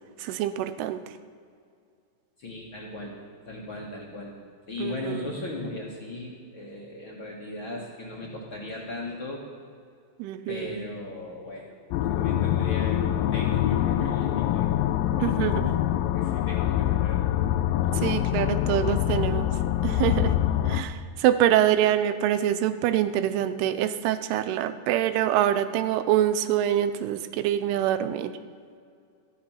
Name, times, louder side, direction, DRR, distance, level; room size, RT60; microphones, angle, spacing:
voice 1, 0.2-1.0 4.8-5.3 10.2-10.8 15.2-15.7 17.9-19.5 19.8-20.3 20.7-28.3, right 11 dB, 85° right, 12 dB, 2.7 m, -25 dB
voice 2, 2.4-3.1 3.5-4.3 4.7-9.4 10.5-11.8 12.0-14.9 16.1-17.6 17.9-18.3, left 2 dB, 45° left, -3 dB, 1.9 m, -37 dB
sound 1, 11.9-20.8, left 12 dB, 80° left, 2.2 m, -25 dB
13.5 x 12.0 x 5.8 m, 2.3 s
omnidirectional pair, 4.5 m